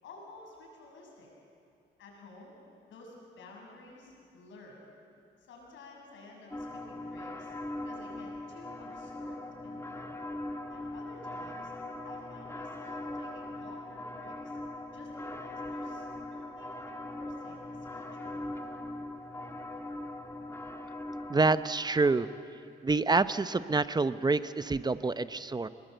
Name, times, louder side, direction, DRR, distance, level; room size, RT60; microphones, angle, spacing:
voice 1, 0.0-1.3 2.0-2.5 2.9-4.8 5.4-10.1 10.7-11.7 12.0-14.6 14.9-18.4, left 2 dB, 75° left, -1 dB, 7.3 m, -52 dB
sound 1, 6.5-22.4, left 1 dB, 10° left, 1.8 m, -41 dB
voice 2, 21.3-22.3 22.8-25.7, right 3 dB, 20° right, 13 dB, 0.7 m, -27 dB
26.5 x 20.5 x 8.0 m, 2.5 s
cardioid pair, 90°, 20 cm